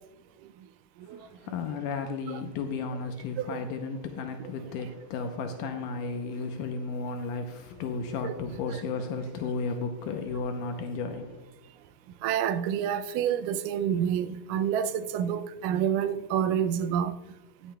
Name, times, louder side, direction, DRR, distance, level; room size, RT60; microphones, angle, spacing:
voice 1, 1.1-11.4, left 4 dB, 80° left, 2.2 m, -34 dB
voice 2, 12.2-17.1, right 9 dB, 85° right, 2.1 m, -28 dB
20.0 x 7.0 x 2.2 m
omnidirectional pair, 3.8 m